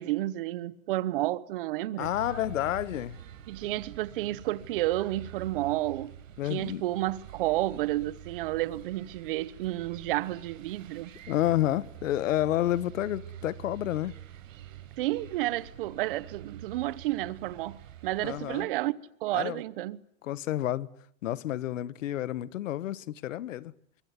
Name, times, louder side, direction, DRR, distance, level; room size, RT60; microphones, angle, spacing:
voice 1, 0.0-2.1 3.5-6.2 6.5-11.1 15.0-18.9 19.2-20.0, right 16 dB, 45° right, 1.1 m, -31 dB
voice 2, 2.0-3.2 6.4-6.8 11.3-14.2 18.2-18.7 19.3-19.6 20.2-20.9 21.2-23.7, left 13 dB, 75° left, 1.4 m, -30 dB
sound 1, 2.0-18.6, right 10 dB, 85° right, 4.6 m, -46 dB
25.5 x 23.5 x 9.5 m
supercardioid pair, 170°, 39 cm